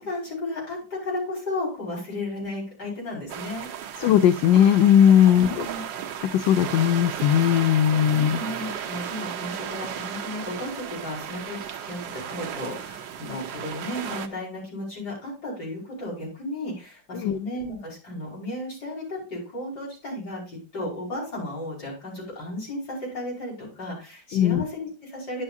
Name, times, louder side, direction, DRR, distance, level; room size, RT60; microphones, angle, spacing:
voice 1, 0.0-3.7 5.2-5.9 8.2-25.4, left 1 dB, 60° left, -6 dB, 5.7 m, -34 dB
sound 1, 3.3-14.3, right 9 dB, 75° right, 1.5 m, -35 dB
voice 2, 4.0-5.7 6.2-8.4 17.1-17.4 24.3-24.6, left 10 dB, 80° left, 11 dB, 1.3 m, -18 dB
11.0 x 7.2 x 2.6 m, 0.32 s
omnidirectional pair, 2.0 m